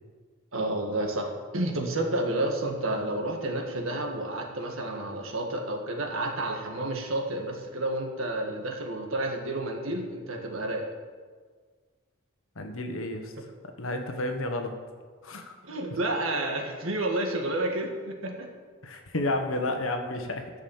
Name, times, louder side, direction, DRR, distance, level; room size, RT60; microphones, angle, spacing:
voice 1, 0.5-10.9 15.6-18.5, right 1 dB, 75° right, 2 dB, 1.7 m, -30 dB
voice 2, 12.5-13.3 13.8-14.7 15.2-15.6 18.8-20.5, left 2 dB, 75° left, 5 dB, 1.3 m, -31 dB
11.0 x 6.3 x 7.2 m, 1.6 s
head